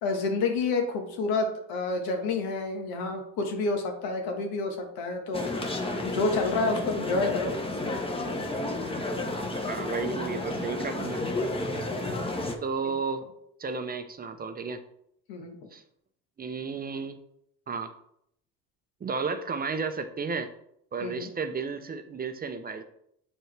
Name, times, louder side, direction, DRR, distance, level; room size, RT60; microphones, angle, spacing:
voice 1, 0.0-5.5 6.0-7.5 11.7-12.1 15.3-15.6 21.0-21.3, left 3 dB, 80° left, 3 dB, 1.5 m, -29 dB
sound 1, 5.3-12.6, left 2 dB, 15° left, 0.9 m, -31 dB
voice 2, 9.7-11.2 12.6-13.2 13.6-14.8 15.7-15.8 16.4-17.2 17.7-17.9 19.0-20.5 20.9-22.8, right 5 dB, 25° right, 8 dB, 0.6 m, -32 dB
7.6 x 4.6 x 3.3 m, 0.73 s
cardioid pair, 105°, 36 cm